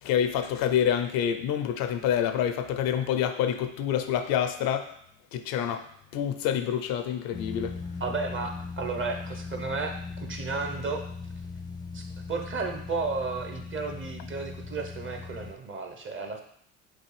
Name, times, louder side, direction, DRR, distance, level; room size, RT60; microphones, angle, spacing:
voice 1, 0.0-4.9 5.3-7.8, left 9 dB, 70° left, 8 dB, 0.6 m, -27 dB
sound 1, 7.3-15.5, left 4 dB, 10° left, 0.5 m, -39 dB
voice 2, 8.0-11.0 11.9-16.4, right 4 dB, 35° right, 4 dB, 0.8 m, -33 dB
6.0 x 2.4 x 3.2 m, 0.67 s
supercardioid pair, 70°, 36 cm